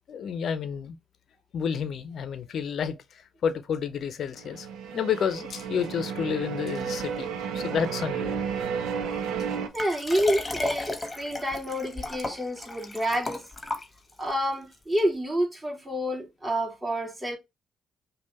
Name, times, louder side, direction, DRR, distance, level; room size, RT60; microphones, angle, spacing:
voice 1, 0.1-1.0 1.5-3.0 3.4-4.7 4.9-8.4, left 7 dB, 65° left, 0.7 m, -30 dB
sound 1, 4.4-9.7, right 7 dB, 75° right, 0.7 m, -32 dB
voice 2, 9.7-13.4 14.2-17.4, equal, 15° right, 2.5 m, -28 dB
Liquid, 9.8-14.3 15.0-15.1, left 2 dB, 25° left, 1.3 m, -34 dB
5.2 x 2.4 x 3.1 m
supercardioid pair, 55°, 0 cm